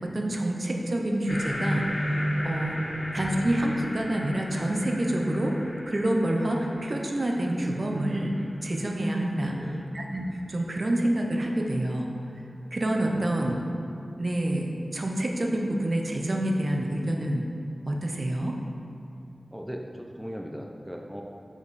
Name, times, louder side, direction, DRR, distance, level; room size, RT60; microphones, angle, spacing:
voice 1, 0.0-2.8 3.1-5.5 5.9-8.3 8.6-9.6 9.9-12.1 12.7-13.6 14.2-17.4 17.9-18.5, right 1 dB, 45° right, 1 dB, 0.6 m, -27 dB
sound 1, 1.3-10.2, equal, 80° left, 0.9 m, -34 dB
voice 2, 2.8-3.1 9.4-9.9 13.1-13.7 19.5-21.2, equal, 5° right, 1 dB, 0.4 m, -39 dB
5.2 x 4.9 x 4.0 m, 2.7 s
wide cardioid pair, 80°, 0 cm